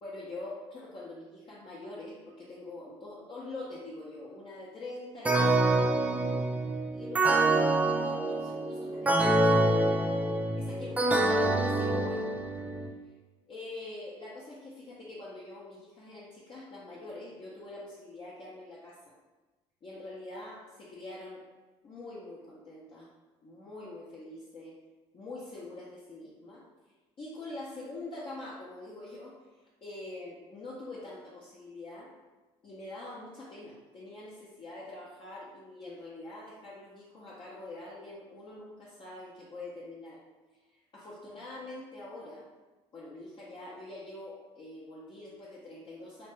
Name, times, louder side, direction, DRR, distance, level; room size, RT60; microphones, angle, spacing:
voice 1, 0.0-6.4 6.9-9.8 10.5-12.3 13.5-19.1 19.8-21.4 21.8-23.1 23.4-24.7 25.1-26.6 27.2-29.3 29.8-32.1 32.6-40.2 40.6-42.5 42.9-46.3, left 2 dB, 40° left, -7 dB, 0.6 m, -44 dB
sound 1, 5.2-12.9, right 2 dB, 10° right, 0.3 m, -26 dB
3.0 x 2.2 x 3.0 m, 1.2 s
supercardioid pair, 85°, 14 cm